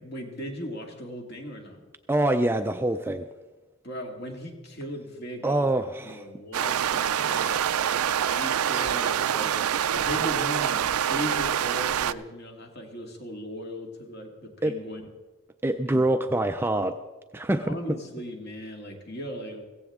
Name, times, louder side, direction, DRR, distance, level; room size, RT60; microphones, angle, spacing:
voice 1, 0.0-1.8 3.8-15.0 15.9-16.0 17.6-19.6, equal, 50° left, 2 dB, 2.1 m, -38 dB
voice 2, 2.1-3.3 5.4-6.3 14.6-14.8 15.6-17.0 17.3-17.8, right 1 dB, 10° right, 8 dB, 0.3 m, -25 dB
sound 1, 6.5-12.1, right 9 dB, 90° right, 0.4 m, -26 dB
16.5 x 15.0 x 3.6 m, 1.2 s
head